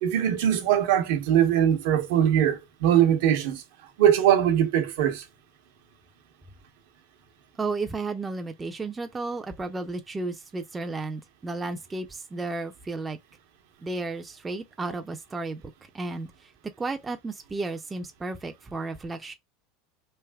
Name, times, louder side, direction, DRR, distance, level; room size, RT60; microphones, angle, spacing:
voice 1, 0.0-3.6 4.0-5.2, right 10 dB, 75° right, 0.9 m, -21 dB
voice 2, 7.6-13.2 13.8-15.6 15.9-16.3 16.8-19.3, right 3 dB, 15° right, 0.4 m, -33 dB
3.3 x 2.6 x 2.2 m
supercardioid pair, 130°, 0 cm